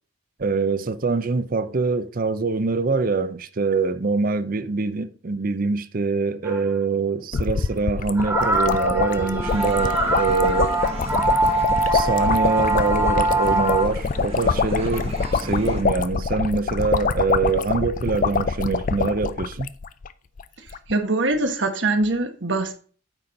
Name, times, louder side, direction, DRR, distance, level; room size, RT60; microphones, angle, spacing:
voice 1, 0.4-10.8 11.9-19.7, right 4 dB, 50° right, 0.6 m, -24 dB
sound 1, 6.4-6.6 7.4-7.5 8.2-13.8, right 2 dB, 15° right, 1.4 m, -23 dB
sound 2, 7.3-20.1 20.4-20.5 20.7-20.9, left 5 dB, 45° left, 0.4 m, -25 dB
sound 3, 9.4-15.8, right 2 dB, 30° right, 1.1 m, -35 dB
voice 2, 20.6-22.7, right 2 dB, 70° right, 1.2 m, -23 dB
9.0 x 4.3 x 5.2 m
head